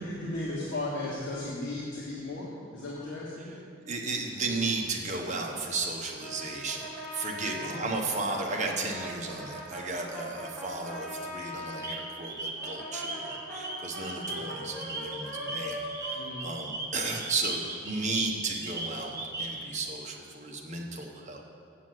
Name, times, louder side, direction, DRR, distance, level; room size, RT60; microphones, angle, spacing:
voice 1, 0.0-3.6 7.6-7.9 14.3-14.5 16.1-16.4, left 2 dB, 65° left, -6 dB, 1.5 m, -36 dB
voice 2, 3.8-21.4, right 3 dB, 40° right, 1 dB, 1.1 m, -34 dB
Brass instrument, 6.2-12.0 12.6-17.3, equal, 5° left, 2.3 m, -41 dB
sound 1, 11.8-19.7, right 2 dB, 15° right, 0.7 m, -39 dB
7.5 x 7.1 x 7.7 m, 2.3 s
head